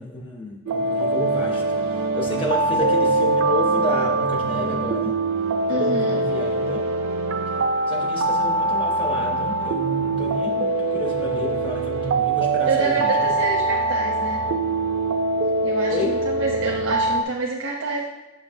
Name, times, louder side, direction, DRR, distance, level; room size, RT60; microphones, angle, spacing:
voice 1, 0.0-5.2 5.7-6.9 7.9-13.3 15.9-16.1, left 1 dB, 25° left, 0 dB, 0.6 m, -30 dB
sound 1, 0.7-17.2, right 2 dB, 70° right, 0.4 m, -23 dB
voice 2, 5.7-6.2 12.7-14.4 15.6-18.1, right 3 dB, 90° right, -2 dB, 0.8 m, -27 dB
6.7 x 5.7 x 2.6 m, 1.1 s
head